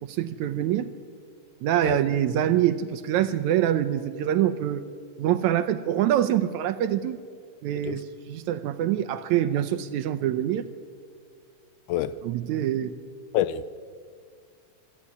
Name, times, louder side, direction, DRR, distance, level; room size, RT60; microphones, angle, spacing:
voice 1, 0.1-0.9 1.6-4.8 5.2-7.2 7.6-10.7 12.2-12.9, right 11 dB, 75° right, 1.8 m, -25 dB
voice 2, 13.3-13.7, left 12 dB, 80° left, 2.1 m, -26 dB
25.5 x 11.0 x 9.7 m
omnidirectional pair, 3.7 m